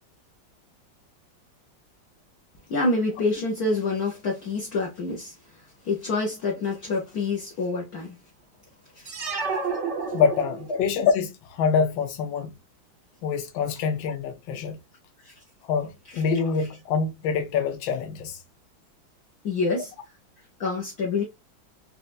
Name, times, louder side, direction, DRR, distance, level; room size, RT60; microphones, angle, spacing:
voice 1, 2.7-5.3 5.8-8.2 8.9-9.3 10.7-10.8 15.2-15.3 16.1-16.2 19.4-19.9 20.6-21.2, left 3 dB, 55° left, 1.2 m, -27 dB
sound 1, 9.0-10.9, right 4 dB, 50° right, 0.9 m, -30 dB
voice 2, 10.1-12.5 13.2-14.8 15.7-18.4, left 6 dB, 75° left, 1.5 m, -25 dB
4.4 x 2.5 x 2.5 m
omnidirectional pair, 2.2 m